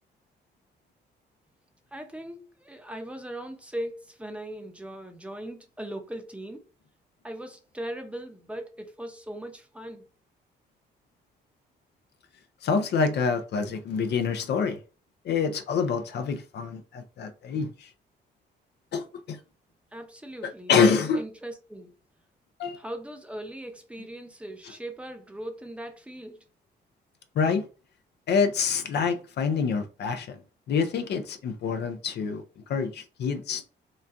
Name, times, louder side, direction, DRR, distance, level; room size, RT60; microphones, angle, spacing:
voice 1, 1.9-6.6 7.2-10.1 19.9-20.7 21.2-21.9 22.8-26.4, right 1 dB, 5° right, 0.6 m, -39 dB
voice 2, 12.6-14.8 15.2-17.9 18.9-19.4 20.4-21.2 22.6-22.8 27.4-27.7 28.3-30.4 30.7-33.6, left 5 dB, 65° left, 0.5 m, -26 dB
4.0 x 2.2 x 2.5 m
cardioid pair, 110°, 18 cm